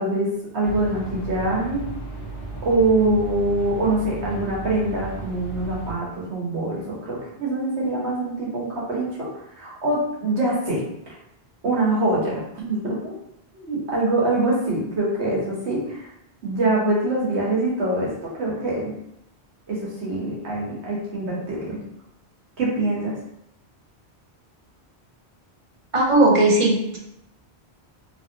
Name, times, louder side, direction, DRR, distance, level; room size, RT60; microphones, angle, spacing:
voice 1, 0.0-1.9 2.6-11.2 11.6-13.2 13.5-16.1 16.4-18.9 19.7-21.8 22.6-23.2, right 2 dB, 90° right, -5 dB, 1.3 m, -24 dB
sound 1, 0.6-5.9, right 3 dB, 40° left, 0.5 m, -35 dB
voice 2, 25.9-27.0, right 2 dB, 45° right, 0 dB, 0.4 m, -17 dB
2.9 x 2.6 x 2.7 m, 0.80 s
omnidirectional pair, 1.1 m